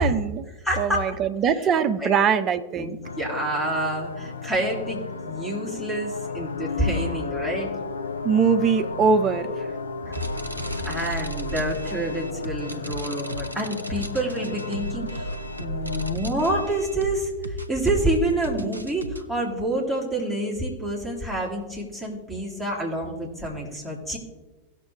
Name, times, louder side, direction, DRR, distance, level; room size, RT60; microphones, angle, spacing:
voice 1, 0.0-0.5 0.8-3.0 8.2-9.7, right 6 dB, 30° right, 10 dB, 0.6 m, -22 dB
voice 2, 0.6-1.2 1.6-1.7 2.0-2.2 2.8-7.7 10.1-10.2 10.8-15.3 15.6-24.2, right 1 dB, 5° left, -3 dB, 2.7 m, -28 dB
sound 1, 3.0-16.1, left 4 dB, 75° left, 0.6 m, -34 dB
sound 2, 10.1-19.2, right 1 dB, 85° right, 0.6 m, -35 dB
17.5 x 6.7 x 3.3 m, 1.2 s
figure-of-eight pair, 90°, 0 cm